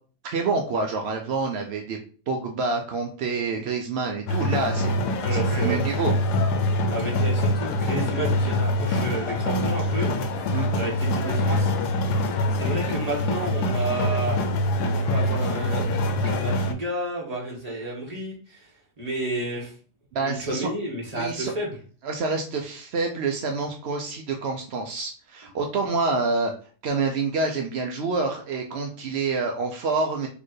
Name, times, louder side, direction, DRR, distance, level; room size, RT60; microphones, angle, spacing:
voice 1, 0.2-2.0 2.3-6.2 10.5-10.7 20.1-20.7 21.1-21.5 22.0-26.5 26.8-30.3, right 4 dB, 70° right, 2 dB, 0.6 m, -27 dB
sound 1, 4.3-16.7, left 1 dB, 75° left, 1.2 m, -24 dB
voice 2, 5.2-5.8 6.9-11.7 12.5-14.5 14.9-15.8 16.2-18.7 19.0-19.7 20.2-21.8, right 2 dB, 25° right, -3 dB, 1.5 m, -31 dB
4.3 x 3.2 x 3.1 m, 0.40 s
omnidirectional pair, 1.8 m